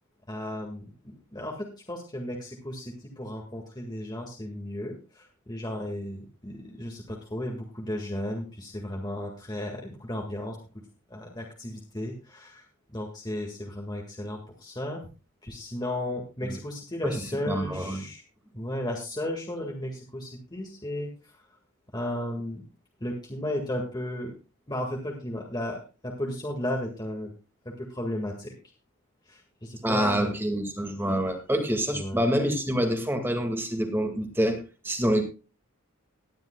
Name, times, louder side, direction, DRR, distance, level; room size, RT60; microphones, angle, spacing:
voice 1, 0.3-10.6 11.1-15.0 15.4-18.2 18.5-21.4 21.9-22.6 23.0-24.3 24.7-27.3 27.8-28.5 29.3-30.4 31.9-32.2, left 1 dB, 20° left, 0 dB, 1.8 m, -34 dB
voice 2, 17.0-18.0 29.8-35.2, equal, 10° right, 5 dB, 1.9 m, -27 dB
18.5 x 10.5 x 2.2 m, 0.31 s
head